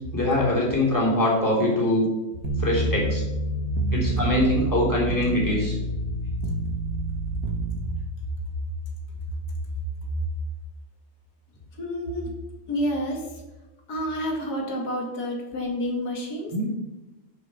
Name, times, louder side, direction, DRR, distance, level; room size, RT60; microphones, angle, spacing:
voice 1, 0.1-2.1 2.6-3.2 3.9-5.8 16.5-16.7, left 1 dB, 10° left, -4 dB, 3.4 m, -23 dB
sound 1, 2.4-7.8, right 2 dB, 65° right, 1.5 m, -28 dB
voice 2, 11.8-12.3 12.7-13.3 13.9-16.5, equal, 80° left, 0 dB, 2.2 m, -29 dB
10.0 x 5.8 x 6.9 m, 1.1 s
omnidirectional pair, 1.6 m